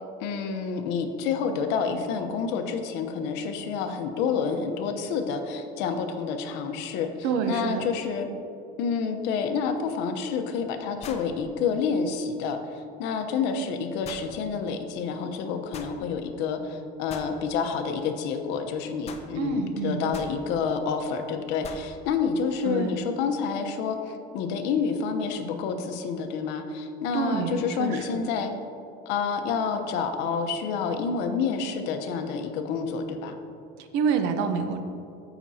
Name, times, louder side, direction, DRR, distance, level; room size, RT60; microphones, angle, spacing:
voice 1, 0.2-7.1 7.5-8.3 8.8-28.5 29.1-33.4, left 5 dB, 65° left, 6 dB, 0.9 m, -28 dB
voice 2, 7.2-7.9 19.4-20.1 22.6-23.0 27.1-28.3 33.8-34.8, right 6 dB, 70° right, 7 dB, 0.9 m, -28 dB
sound 1, 9.8-9.9 11.0-11.4 14.0-14.3 15.7-16.0 17.1-17.3 19.1-19.3 20.1-20.4 21.6-21.9, left 5 dB, 35° left, 0.7 m, -41 dB
15.0 x 6.0 x 2.8 m, 2.7 s
cardioid pair, 150°, 19 cm